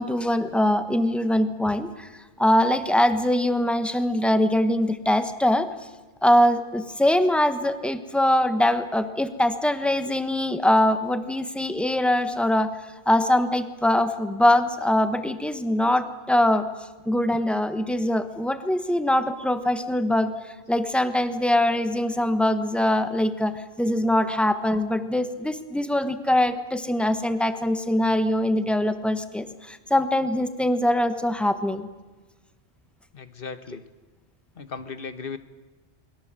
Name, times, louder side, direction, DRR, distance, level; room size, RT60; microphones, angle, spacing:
voice 1, 0.0-2.1 2.4-5.7 6.2-12.7 13.1-16.7 17.1-20.3 20.7-31.9, left 1 dB, ahead, 9 dB, 1.3 m, -22 dB
voice 2, 33.1-33.8 34.6-35.4, left 5 dB, 55° left, 11 dB, 1.4 m, -36 dB
28.5 x 22.0 x 7.6 m, 1.2 s
omnidirectional pair, 1.1 m